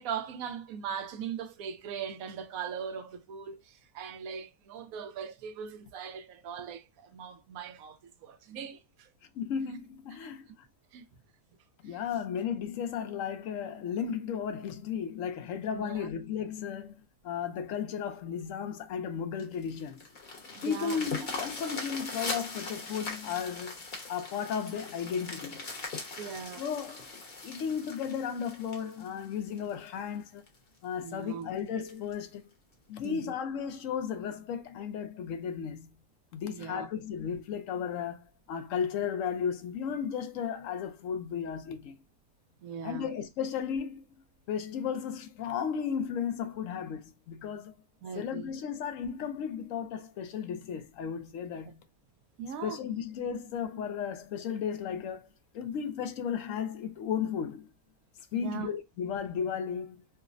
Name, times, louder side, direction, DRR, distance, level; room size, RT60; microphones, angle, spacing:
voice 1, 0.0-9.1 10.9-11.0 11.9-12.0 15.7-16.1 20.5-21.0 26.2-26.6 31.0-31.5 33.0-33.3 36.4-36.9 42.6-43.1 48.0-48.5 51.6-51.7 52.4-52.8 58.3-58.7, right 7 dB, 75° right, 1.0 m, -40 dB
voice 2, 9.3-10.7 11.8-20.0 20.6-23.8 24.1-25.7 26.2-26.3 26.6-27.1 27.4-30.4 30.8-32.4 32.9-35.9 36.3-42.0 42.8-44.1 44.5-47.8 48.2-51.7 52.6-55.3 55.5-57.7 58.3-60.0, left 7 dB, 70° left, 0.9 m, -34 dB
sound 1, 19.4-29.9 30.5-30.6 31.0-31.1 31.4-31.5 31.9-32.1 33.0-33.1, left 3 dB, 45° left, 1.0 m, -40 dB
4.7 x 2.0 x 2.5 m
omnidirectional pair, 1.6 m